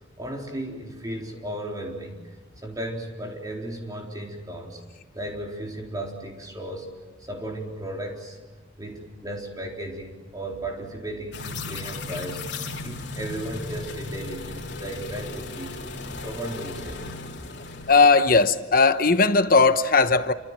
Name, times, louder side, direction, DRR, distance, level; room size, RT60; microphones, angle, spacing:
voice 1, 0.2-2.4 2.6-4.8 5.1-6.9 7.2-8.4 8.8-17.1, right 1 dB, 20° right, 4.1 m, -35 dB
sound 1, 11.3-18.0, left 3 dB, 60° left, 3.4 m, -36 dB
voice 2, 17.9-20.3, left 4 dB, 45° left, 1.1 m, -18 dB
28.5 x 26.0 x 7.6 m
head